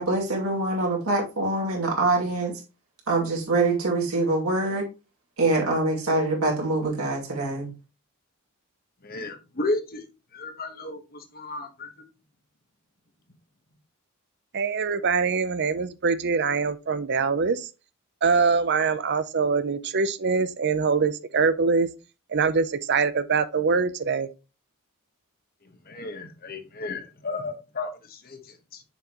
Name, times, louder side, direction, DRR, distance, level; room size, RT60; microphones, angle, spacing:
voice 1, 0.0-2.5 3.1-4.8 5.4-7.7, right 2 dB, 70° right, 2.6 m, -24 dB
voice 2, 9.0-10.0 10.3-11.9 25.6-28.8, left 2 dB, 40° left, 1.3 m, -33 dB
voice 3, 14.5-17.7 18.2-21.9 22.3-24.3, right 5 dB, 50° right, 0.6 m, -23 dB
6.9 x 5.7 x 3.0 m
head